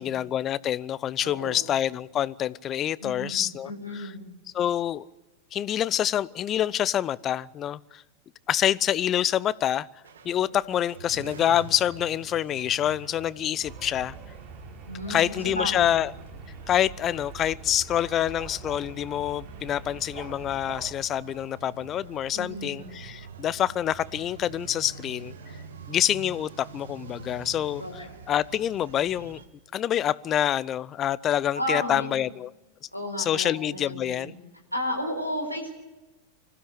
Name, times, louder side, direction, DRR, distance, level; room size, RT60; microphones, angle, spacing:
voice 1, 0.0-3.7 4.5-5.1 5.5-8.0 8.5-9.9 10.2-14.2 15.1-16.1 16.7-25.3 25.9-27.8 28.3-29.4 29.7-32.5 33.2-34.3, left 11 dB, 30° left, 0.6 m, -26 dB
voice 2, 1.2-1.7 3.0-4.3 14.9-16.0 22.3-22.9 27.8-28.1 31.5-32.1 32.9-34.3 34.7-35.7, equal, 90° right, 4.5 m, -33 dB
sound 1, 10.0-29.5, right 5 dB, 65° right, 2.0 m, -45 dB
sound 2, 13.6-20.9, right 4 dB, 35° right, 3.3 m, -44 dB
25.5 x 15.5 x 8.3 m
figure-of-eight pair, 90°, 0 cm